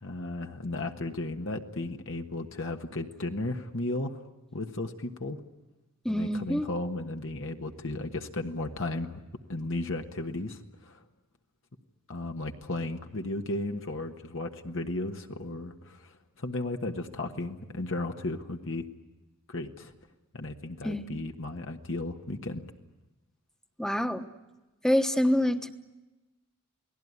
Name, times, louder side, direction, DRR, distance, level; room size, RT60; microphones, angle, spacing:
voice 1, 0.0-4.2 4.5-5.4 6.1-9.2 9.5-11.0 12.1-18.9 19.5-19.9 20.3-22.6, left 2 dB, 65° left, 4 dB, 1.4 m, -35 dB
voice 2, 6.0-6.7 20.8-21.1 23.8-24.3 24.8-25.7, equal, 5° left, 7 dB, 1.2 m, -26 dB
29.0 x 19.0 x 9.7 m, 1.1 s
head